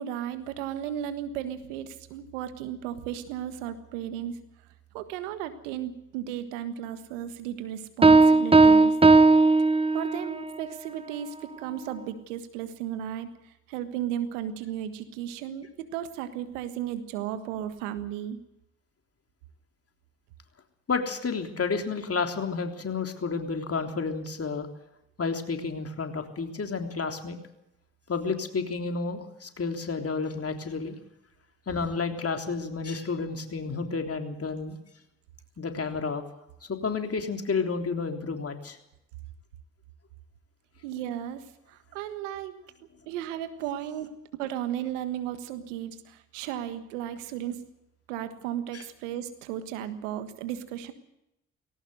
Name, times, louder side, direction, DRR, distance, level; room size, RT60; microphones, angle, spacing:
voice 1, 0.0-4.4 4.9-9.0 9.9-13.3 13.7-18.4 40.8-42.6 43.1-44.1 44.4-47.6 48.1-50.9, right 10 dB, 85° right, 11 dB, 1.6 m, -35 dB
sound 1, 8.0-10.4, right 3 dB, 15° right, 0.9 m, -17 dB
voice 2, 20.9-24.7 25.2-27.4 28.1-31.0 31.7-34.8 35.6-36.2 36.8-38.8 48.7-48.8, left 4 dB, 40° left, 5 dB, 3.5 m, -31 dB
19.5 x 17.0 x 7.9 m, 0.85 s
hypercardioid pair, 45°, 36 cm